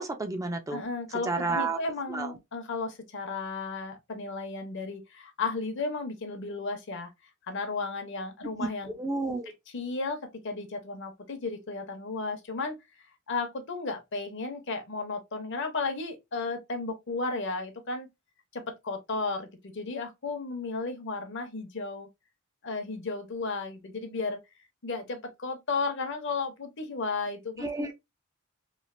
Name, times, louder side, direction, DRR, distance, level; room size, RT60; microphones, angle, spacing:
voice 1, 0.0-0.8 1.3-1.8 2.1-2.3 8.6-8.7 9.0-9.5 27.6-27.9, right 3 dB, 15° right, 0.4 m, -30 dB
voice 2, 0.7-7.1 7.5-9.0 9.7-12.8 13.3-18.1 18.5-22.1 22.6-24.4 24.8-27.7, left 3 dB, 60° left, 0.7 m, -34 dB
3.1 x 2.4 x 2.4 m
head